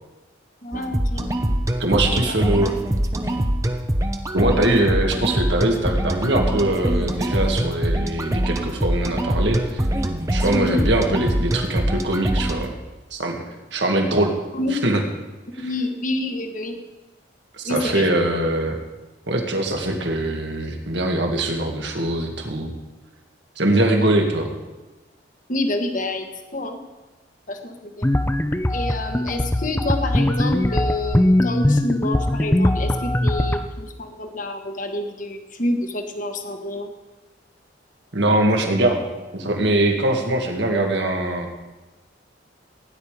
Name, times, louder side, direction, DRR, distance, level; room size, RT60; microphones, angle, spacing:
voice 1, 0.6-1.3 2.1-2.5 10.5-10.8 14.5-14.8 15.5-16.8 17.6-18.4 25.5-26.8 27.5-28.1 28.7-36.9, left 2 dB, 45° left, 5 dB, 1.5 m, -28 dB
sound 1, 0.7-12.7, right 1 dB, 15° right, 0.9 m, -23 dB
voice 2, 1.8-2.7 4.3-9.8 10.3-12.7 13.1-13.4 13.7-14.3 14.7-15.0 15.6-15.7 17.6-18.8 19.3-22.7 23.6-24.5 38.1-39.0 39.3-41.5, right 1 dB, 65° right, 2 dB, 2.1 m, -22 dB
sound 2, 28.0-33.7, left 1 dB, 10° left, 0.6 m, -20 dB
17.0 x 10.0 x 5.0 m, 1.1 s
head